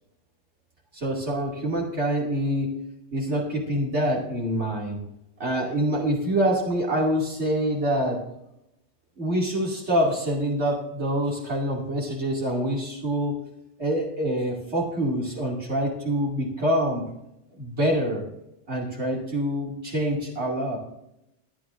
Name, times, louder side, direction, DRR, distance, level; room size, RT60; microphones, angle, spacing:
voice 1, 0.9-2.7 3.1-5.0 5.4-8.2 9.2-13.4 13.8-17.0 17.6-18.3 18.7-20.8, equal, 70° right, -4 dB, 2.6 m, -26 dB
23.0 x 9.6 x 2.5 m, 0.84 s
omnidirectional pair, 1.2 m